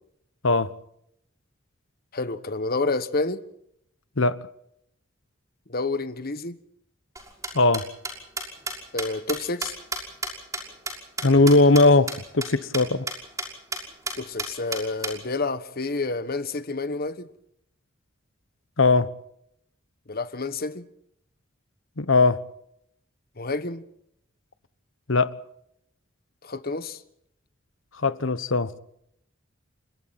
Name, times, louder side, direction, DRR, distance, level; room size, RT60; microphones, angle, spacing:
voice 1, 2.1-3.4 5.7-6.6 8.9-9.8 14.2-17.3 20.1-20.8 23.4-23.8 26.4-27.0, left 3 dB, 50° left, 1.4 m, -29 dB
sound 1, 7.2-11.8 12.1-12.2 12.4-12.5 12.7-12.8 13.1-13.5 13.7-13.8 14.1-15.1, right 3 dB, 15° right, 6.0 m, -31 dB
voice 2, 7.5-7.9 11.2-13.1 18.8-19.1 22.0-22.4 25.1-25.3 28.0-28.7, left 3 dB, 70° left, 1.2 m, -19 dB
29.5 x 25.5 x 4.3 m
head